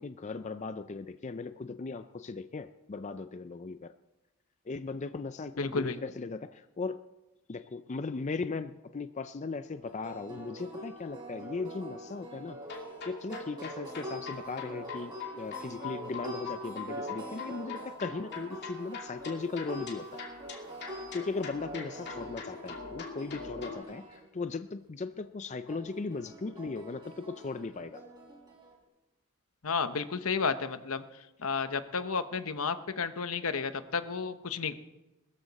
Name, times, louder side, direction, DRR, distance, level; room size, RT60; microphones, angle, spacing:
voice 1, 0.0-3.9 4.7-7.0 7.5-12.6 13.1-20.2 20.9-28.0, left 4 dB, 30° left, 10 dB, 0.4 m, -38 dB
voice 2, 5.6-6.0 29.6-31.0 31.4-34.7, left 5 dB, 70° left, 10 dB, 1.0 m, -32 dB
sound 1, 9.7-24.2 25.7-28.7, right 1 dB, 20° right, 5.5 m, -44 dB
sound 2, 12.6-23.8, left 5 dB, 50° left, 2.7 m, -43 dB
21.0 x 13.5 x 4.1 m, 1.0 s
head